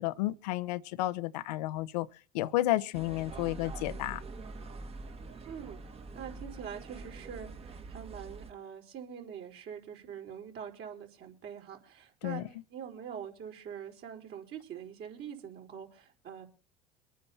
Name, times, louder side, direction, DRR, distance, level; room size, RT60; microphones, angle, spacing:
voice 1, 0.0-2.1 2.3-4.2 12.2-12.5, left 16 dB, 75° left, 0.9 m, -32 dB
sound 1, 2.9-8.5, right 3 dB, 30° right, 1.7 m, -44 dB
voice 2, 5.5-5.8 6.1-12.4 12.7-16.5, right 8 dB, 55° right, 4.7 m, -44 dB
24.5 x 9.3 x 4.2 m
hypercardioid pair, 75°, 21 cm